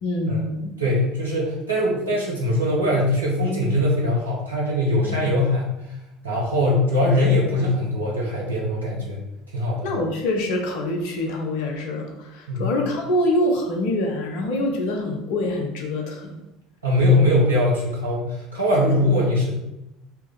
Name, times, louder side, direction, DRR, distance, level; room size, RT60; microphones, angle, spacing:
voice 1, 0.0-0.7 5.0-5.2 9.8-16.4 17.1-17.2, left 1 dB, 55° left, 2 dB, 1.0 m, -25 dB
voice 2, 0.8-5.7 6.2-9.2 9.5-9.8 12.5-12.6 16.8-19.5, left 1 dB, 80° right, -4 dB, 1.3 m, -21 dB
4.5 x 3.1 x 3.7 m, 0.88 s
figure-of-eight pair, 65°, 0 cm